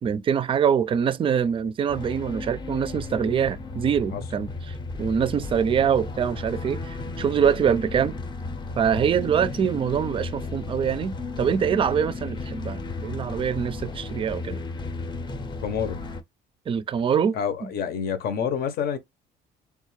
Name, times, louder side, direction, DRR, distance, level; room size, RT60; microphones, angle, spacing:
voice 1, 0.0-8.2 8.8-14.6 16.7-17.7, right 7 dB, 30° right, 0.4 m, -24 dB
sound 1, 1.9-16.2, left 3 dB, 25° left, 0.6 m, -34 dB
voice 2, 15.6-16.0 17.3-19.0, left 7 dB, 65° left, 0.8 m, -27 dB
3.4 x 2.4 x 3.0 m
cardioid pair, 110°, 17 cm